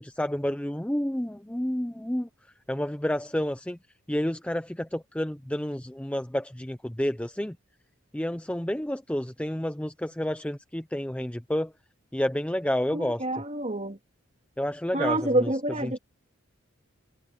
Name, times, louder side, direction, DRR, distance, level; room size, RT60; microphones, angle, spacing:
voice 1, 0.0-2.3 2.7-3.8 4.1-7.6 8.1-11.7 12.1-13.2 14.6-15.5 15.8-16.0, left 1 dB, 5° left, 0.5 m, -30 dB
voice 2, 12.9-14.0 14.9-16.0, right 1 dB, 30° right, 3.2 m, -27 dB
head